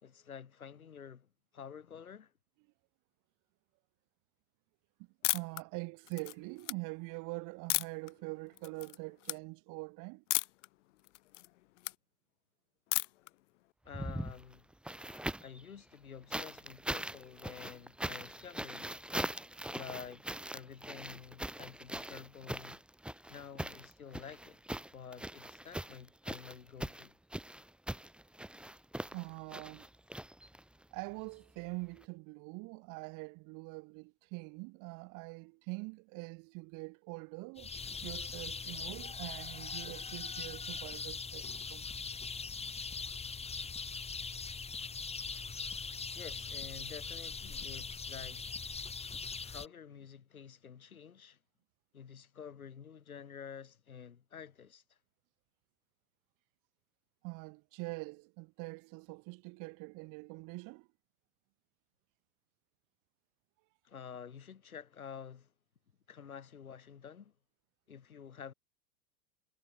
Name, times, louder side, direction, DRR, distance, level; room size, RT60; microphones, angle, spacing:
voice 1, 0.0-1.3 1.5-2.3 13.8-14.7 15.4-18.9 19.7-20.2 20.5-22.8 23.3-24.6 24.9-27.1 46.1-48.4 49.4-51.4 51.9-55.0 63.8-65.5 66.1-67.3 67.9-68.5, left 7 dB, 85° left, 3.4 m, -49 dB
sound 1, 5.2-5.6 6.1-6.7 7.7-8.1 8.6-9.0 9.2-9.4 10.3-10.7 11.0-11.9 12.9-13.3, left 18 dB, 60° left, 1.1 m, -33 dB
voice 2, 5.3-10.2 29.1-29.9 30.9-37.7 38.0-41.9 45.3-45.5 57.2-60.9, right 28 dB, 50° right, 3.7 m, -44 dB
sound 2, 13.9-15.6 16.3-30.8 32.0-32.1, right 1 dB, ahead, 2.2 m, -41 dB
sound 3, 37.6-49.7, left 5 dB, 15° left, 3.5 m, -41 dB
hypercardioid pair, 95°, 42 cm